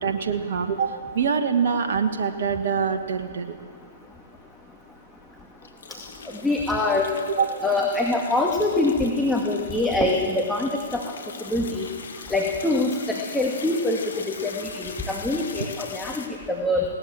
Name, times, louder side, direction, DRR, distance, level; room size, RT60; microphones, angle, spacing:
voice 1, 0.0-3.5 7.3-7.6, right 6 dB, 65° right, 6 dB, 1.5 m, -24 dB
sound 1, 4.7-4.8 5.0-5.1 5.6-16.3, left 5 dB, 70° left, 2.5 m, -41 dB
voice 2, 6.4-7.1 7.6-11.0 11.5-11.9 12.3-16.9, left 2 dB, 5° left, -1 dB, 2.0 m, -24 dB
20.0 x 18.0 x 7.6 m, 2.2 s
hypercardioid pair, 125°, 0 cm